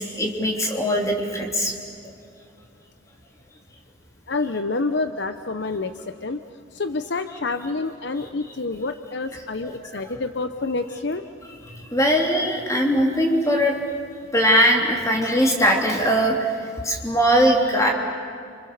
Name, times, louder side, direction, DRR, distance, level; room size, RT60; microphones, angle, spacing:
voice 1, 0.0-1.7 2.0-2.1 8.2-8.3 9.6-9.8 11.7-13.7 14.3-16.5 16.8-17.9, equal, 15° left, 1 dB, 3.1 m, -20 dB
voice 2, 4.3-5.9 6.2-6.4 6.7-11.2, left 3 dB, 60° left, 9 dB, 0.8 m, -28 dB
29.0 x 26.5 x 6.8 m, 2.3 s
head